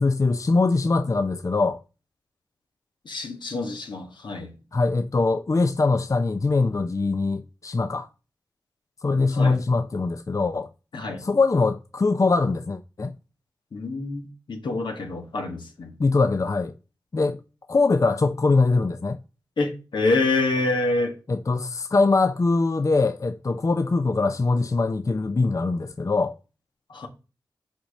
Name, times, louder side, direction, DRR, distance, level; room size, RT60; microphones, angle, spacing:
voice 1, 0.0-1.8 4.7-8.1 9.0-10.7 11.2-13.1 16.0-16.7 17.1-17.4 17.7-19.2 21.3-26.3, left 3 dB, 45° left, 0.5 m, -22 dB
voice 2, 3.0-4.5 9.3-9.6 10.9-11.2 13.7-15.9 19.6-21.1 26.9-27.1, left 2 dB, 85° left, 1.4 m, -26 dB
5.9 x 4.2 x 6.2 m
cardioid pair, 40°, 8 cm